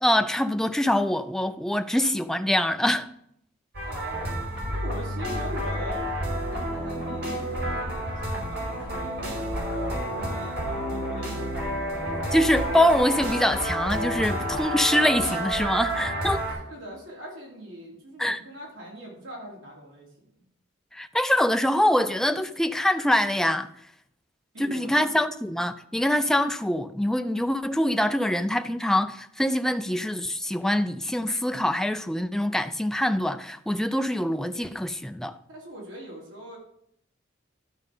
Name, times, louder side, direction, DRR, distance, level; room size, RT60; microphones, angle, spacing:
voice 1, 0.0-3.1 12.3-16.4 18.2-18.4 20.9-23.7 24.6-35.3, left 1 dB, 5° left, 0.4 m, -24 dB
sound 1, 3.7-16.5, equal, 60° right, 5.0 m, -30 dB
voice 2, 3.8-4.3 4.7-6.0 6.5-7.6 7.9-9.3 9.7-12.1 16.0-16.1 16.7-20.1 24.5-25.1 35.5-36.6, equal, 90° right, 3.6 m, -41 dB
12.5 x 5.2 x 5.4 m
head